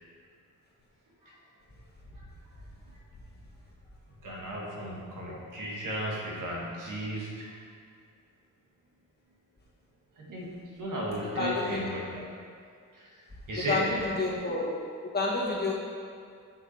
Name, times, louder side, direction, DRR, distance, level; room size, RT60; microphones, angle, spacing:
voice 1, 2.5-3.0 4.2-7.5 10.2-12.2 12.9-14.1, equal, 80° right, -3 dB, 1.8 m, -35 dB
voice 2, 11.2-11.8 13.7-14.7 15.1-15.7, left 3 dB, 30° left, -5 dB, 1.6 m, -29 dB
7.6 x 5.8 x 4.4 m, 2.2 s
wide cardioid pair, 120°, 31 cm